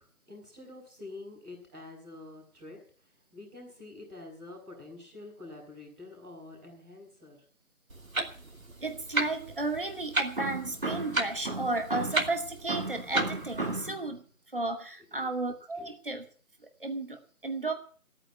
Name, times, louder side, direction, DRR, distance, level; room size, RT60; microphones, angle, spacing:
voice 1, 0.0-7.4 15.1-15.3 15.7-15.9, left 2 dB, ahead, 2.5 m, -47 dB
Clock, 7.9-13.8, right 2 dB, 65° right, 2.9 m, -35 dB
voice 2, 8.8-14.2 14.5-16.2 16.8-17.7, right 2 dB, 35° right, 2.3 m, -32 dB
15.5 x 9.0 x 8.8 m
figure-of-eight pair, 170°, 44 cm